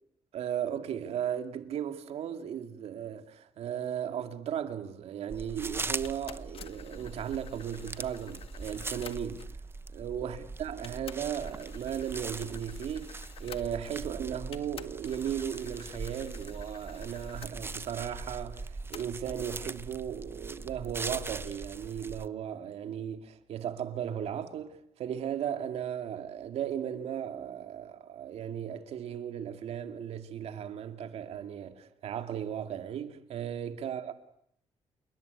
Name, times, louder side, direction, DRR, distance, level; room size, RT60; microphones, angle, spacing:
voice 1, 0.3-9.4 9.9-34.1, right 9 dB, 75° right, 2.3 m, -36 dB
sound 1, 5.3-22.3, right 3 dB, 20° right, 1.0 m, -41 dB
sound 2, 6.0-9.6 10.4-10.5 10.8-14.1 14.5-17.5 18.9-19.4, left 8 dB, 65° left, 1.7 m, -51 dB
28.5 x 21.5 x 8.3 m
cardioid pair, 95°, 11 cm